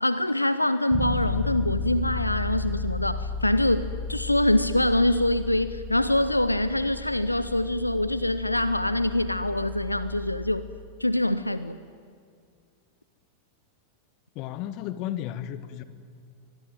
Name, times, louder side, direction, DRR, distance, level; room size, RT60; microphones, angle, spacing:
voice 1, 0.0-10.6 11.0-11.8, left 1 dB, 85° left, 14 dB, 0.7 m, -24 dB
Bass guitar, 0.9-10.7, left 3 dB, 15° right, 2.5 m, -34 dB
voice 2, 14.3-15.8, left 11 dB, 40° left, 13 dB, 1.4 m, -33 dB
24.5 x 21.0 x 9.3 m, 2.2 s
figure-of-eight pair, 90°, 0 cm